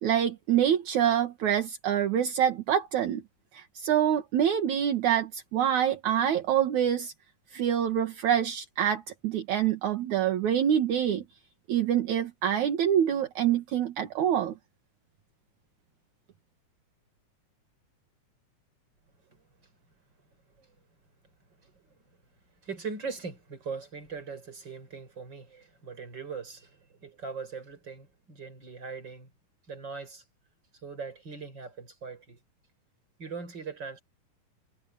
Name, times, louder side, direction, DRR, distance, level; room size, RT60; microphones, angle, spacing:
voice 1, 0.0-3.2 3.5-7.1 7.5-11.2 11.7-14.5, right 9 dB, 65° right, 2.9 m, -26 dB
voice 2, 21.6-22.0 22.6-29.3 29.7-30.2 30.8-32.4 33.2-34.0, right 5 dB, 35° right, 5.9 m, -40 dB
omnidirectional pair, 3.7 m